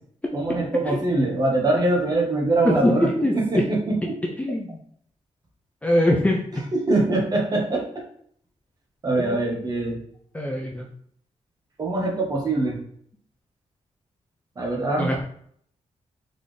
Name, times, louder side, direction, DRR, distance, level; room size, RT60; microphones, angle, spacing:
voice 1, 0.3-3.1 3.3-4.1 6.7-7.8 9.0-10.0 11.8-12.8 14.6-15.1, right 2 dB, 35° right, 0 dB, 1.1 m, -23 dB
voice 2, 2.6-3.6 4.4-4.8 5.8-6.4 9.2-9.4 10.3-10.9 15.0-15.2, left 1 dB, 10° left, -1 dB, 0.5 m, -22 dB
4.0 x 3.4 x 3.3 m, 0.63 s
wide cardioid pair, 165°, 12 cm